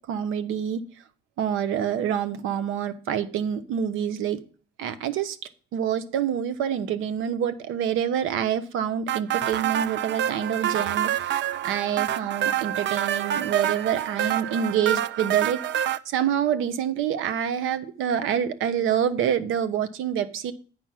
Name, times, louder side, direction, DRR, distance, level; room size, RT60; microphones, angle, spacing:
voice 1, 0.1-0.8 1.4-4.4 4.8-5.4 5.7-15.6 16.0-20.5, right 9 dB, 90° right, 12 dB, 0.9 m, -27 dB
sound 1, 9.1-16.0, right 11 dB, 65° right, 0.5 m, -27 dB
8.9 x 4.8 x 5.7 m, 0.40 s
cardioid pair, 90°, 20 cm